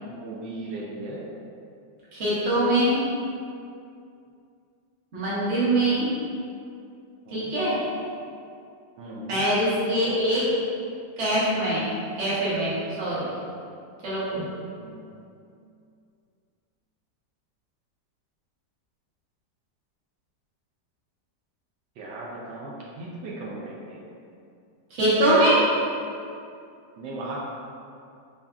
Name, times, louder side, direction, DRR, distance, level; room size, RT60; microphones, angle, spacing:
voice 1, 0.1-1.3 7.3-7.5 9.0-9.4 14.8-15.1 22.0-24.0 27.0-27.4, right 2 dB, 80° right, -5 dB, 1.3 m, -37 dB
voice 2, 2.1-3.0 5.1-6.1 7.3-7.8 9.3-10.4 11.2-11.9 12.2-13.3 14.0-14.5 24.9-25.6, right 1 dB, 40° right, -10 dB, 1.2 m, -23 dB
4.1 x 3.5 x 2.3 m, 2.4 s
omnidirectional pair, 1.9 m